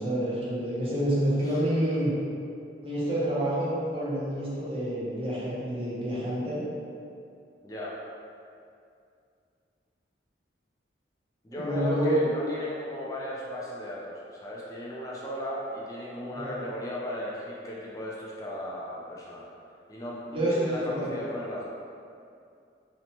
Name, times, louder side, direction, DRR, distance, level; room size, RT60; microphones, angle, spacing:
voice 1, 0.0-2.1 2.8-6.6 11.5-12.2 16.3-16.6 20.3-21.1, right 1 dB, 30° right, -8 dB, 0.6 m, -28 dB
voice 2, 7.6-8.0 11.4-19.5 19.9-21.7, left 1 dB, 20° left, -5 dB, 0.3 m, -36 dB
2.8 x 2.0 x 2.9 m, 2.4 s
head